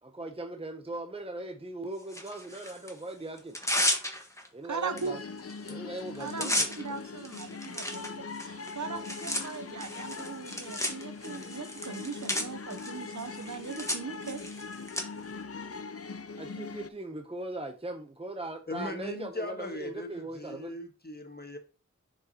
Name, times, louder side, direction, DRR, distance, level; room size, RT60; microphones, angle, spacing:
voice 1, 0.0-3.6 4.5-5.2 5.7-6.7 8.9-9.1 16.4-20.7, right 2 dB, 20° right, 0.7 m, -39 dB
Tearing, 2.1-2.9 3.4-4.5 5.0-5.1 5.4-5.7 6.0-15.0, left 1 dB, 10° left, 1.4 m, -34 dB
voice 2, 4.6-5.1 6.2-14.4 15.1-15.2, right 5 dB, 70° right, 0.7 m, -39 dB
sound 1, 4.9-16.9, left 4 dB, 50° left, 0.5 m, -41 dB
voice 3, 18.7-21.6, left 1 dB, 30° left, 1.4 m, -39 dB
7.0 x 4.9 x 2.8 m
wide cardioid pair, 40°, 31 cm